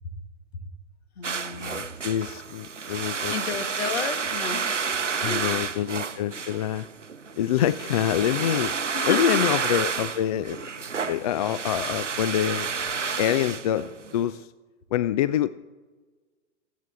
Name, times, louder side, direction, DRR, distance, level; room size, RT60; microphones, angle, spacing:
voice 1, 1.2-1.9 3.3-4.9 5.2-5.5 8.9-9.4, left 5 dB, 60° left, 10 dB, 1.6 m, -32 dB
sound 1, 1.2-14.3, right 5 dB, 90° right, 0.8 m, -30 dB
voice 2, 1.7-3.3 5.2-6.9 7.4-8.7 9.0-10.6 11.0-12.7 13.2-14.5 14.9-15.5, left 11 dB, 35° left, 16 dB, 0.4 m, -26 dB
27.0 x 9.4 x 3.4 m, 1.3 s
figure-of-eight pair, 105°, 35 cm